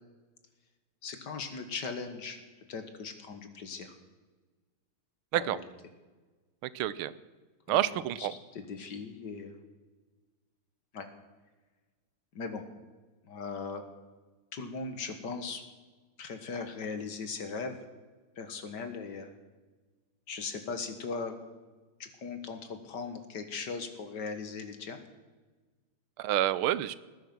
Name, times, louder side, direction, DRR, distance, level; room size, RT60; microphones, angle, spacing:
voice 1, 1.0-2.4 2.7-4.0 5.3-5.6 7.7-8.3 8.5-9.6 10.9-11.1 12.3-12.6 13.2-13.8 14.5-15.6 16.2-17.8 18.4-19.3 20.3-21.4 22.0-25.0, left 4 dB, 55° left, 8 dB, 1.9 m, -39 dB
voice 2, 6.7-7.1 7.7-8.3 26.2-27.0, right 13 dB, 85° right, 17 dB, 1.5 m, -28 dB
19.5 x 10.5 x 6.1 m, 1.3 s
omnidirectional pair, 2.3 m